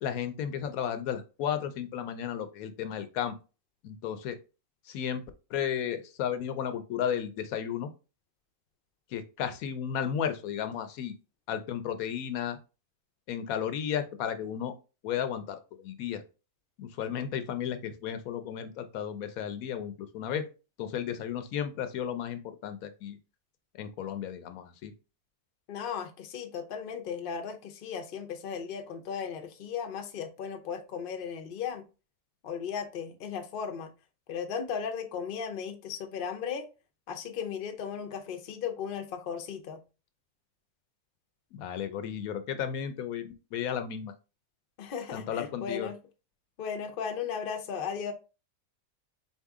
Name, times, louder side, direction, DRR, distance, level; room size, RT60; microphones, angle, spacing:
voice 1, 0.0-3.3 3.8-4.4 4.9-5.2 5.5-7.9 9.1-11.1 11.5-12.6 13.3-14.7 15.0-16.2 16.8-20.5 20.8-23.2 23.8-24.9 41.5-44.1 45.1-45.9, left 9 dB, 75° left, 9 dB, 1.0 m, -33 dB
voice 2, 25.7-31.8 32.4-33.9 34.3-36.7 37.1-39.8 44.8-46.0 46.6-48.1, left 7 dB, 55° left, 4 dB, 0.6 m, -36 dB
4.2 x 2.7 x 3.5 m, 0.31 s
omnidirectional pair, 1.6 m